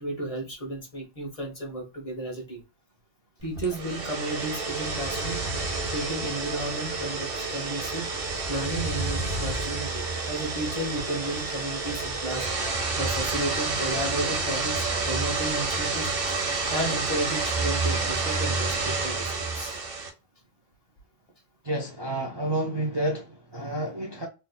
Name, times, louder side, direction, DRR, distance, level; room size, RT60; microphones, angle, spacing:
voice 1, 0.0-2.6 3.4-5.4 5.9-8.1 8.5-12.5 13.0-16.1 16.7-19.2 19.5-19.8, right 1 dB, 30° left, 1.1 m, -33 dB
sound 1, 3.6-20.1, right 3 dB, 55° right, 1.1 m, -29 dB
voice 2, 21.6-24.3, right 1 dB, 25° right, 0.6 m, -30 dB
3.9 x 2.6 x 2.2 m
omnidirectional pair, 1.3 m